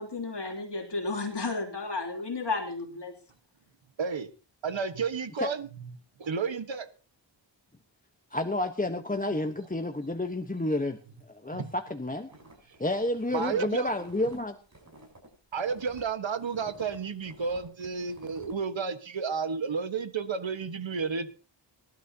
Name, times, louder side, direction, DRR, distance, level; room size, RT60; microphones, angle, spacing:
voice 1, 0.0-3.1, left 3 dB, 65° left, 1 dB, 3.0 m, -33 dB
voice 2, 4.0-4.3 4.6-5.9 6.2-6.9 11.5-11.7 13.3-13.9 15.5-21.3, right 5 dB, 80° right, 10 dB, 1.5 m, -32 dB
voice 3, 8.3-11.0 11.3-12.3 12.8-14.6, left 1 dB, 20° left, 6 dB, 1.2 m, -30 dB
sound 1, 12.3-16.0 16.4-18.6, right 2 dB, 35° right, 7.9 m, -52 dB
25.0 x 12.0 x 2.9 m, 0.34 s
wide cardioid pair, 70°, 45 cm